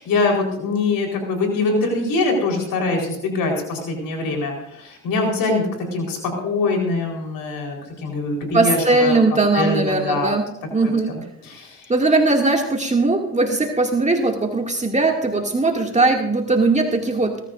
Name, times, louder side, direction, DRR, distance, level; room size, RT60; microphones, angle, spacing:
voice 1, 0.0-5.6 5.9-6.2 6.4-9.2 9.5-10.3 10.8-10.9 11.4-11.8, left 3 dB, 70° left, 1 dB, 4.3 m, -23 dB
voice 2, 8.5-10.4 10.7-11.1 11.9-17.3, right 3 dB, 20° right, 1 dB, 2.3 m, -19 dB
22.0 x 14.0 x 2.6 m, 0.81 s
hypercardioid pair, 55°, 36 cm